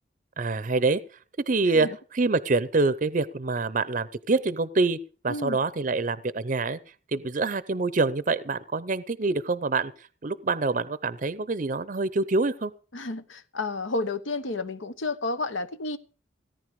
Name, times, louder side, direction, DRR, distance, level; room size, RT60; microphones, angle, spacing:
voice 1, 0.4-1.0 1.5-5.0 5.2-6.8 7.1-9.9 10.2-12.7, right 3 dB, 40° right, 0.6 m, -26 dB
voice 2, 5.3-5.6 12.9-16.0, left 2 dB, 85° left, 1.2 m, -31 dB
17.5 x 10.5 x 5.2 m
head